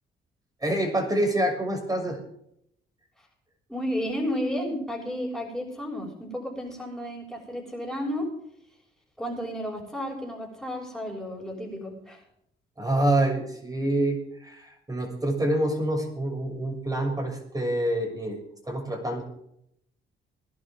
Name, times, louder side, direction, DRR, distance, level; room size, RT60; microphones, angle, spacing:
voice 1, 0.6-2.2 12.8-18.4 18.6-19.2, right 1 dB, 20° right, 3 dB, 6.7 m, -26 dB
voice 2, 3.7-8.3 9.2-12.2, equal, ahead, -6 dB, 6.5 m, -32 dB
22.0 x 11.5 x 3.7 m, 0.73 s
cardioid pair, 90°, 20 cm